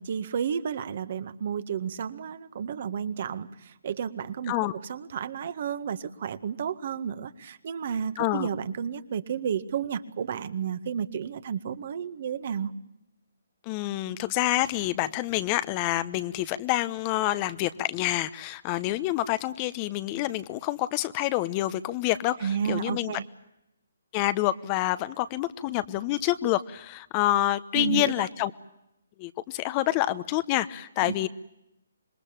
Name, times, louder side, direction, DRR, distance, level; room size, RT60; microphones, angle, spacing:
voice 1, 0.0-12.7 22.4-23.3 27.7-28.3 31.1-31.3, right 7 dB, 50° right, 12 dB, 1.8 m, -32 dB
voice 2, 8.2-8.5 13.7-23.2 24.1-28.5 29.2-31.3, left 15 dB, 25° left, 14 dB, 1.0 m, -27 dB
26.5 x 21.5 x 8.9 m, 0.85 s
hypercardioid pair, 145°, 0 cm